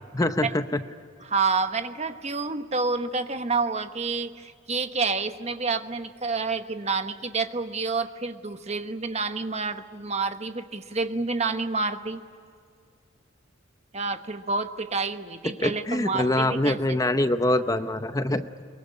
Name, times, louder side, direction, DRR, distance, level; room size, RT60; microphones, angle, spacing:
voice 1, 0.1-0.8 15.4-18.5, left 1 dB, 15° left, 10 dB, 0.7 m, -24 dB
voice 2, 1.2-12.2 13.9-17.0, right 4 dB, 35° right, 8 dB, 1.1 m, -29 dB
23.0 x 22.5 x 10.0 m, 2.2 s
head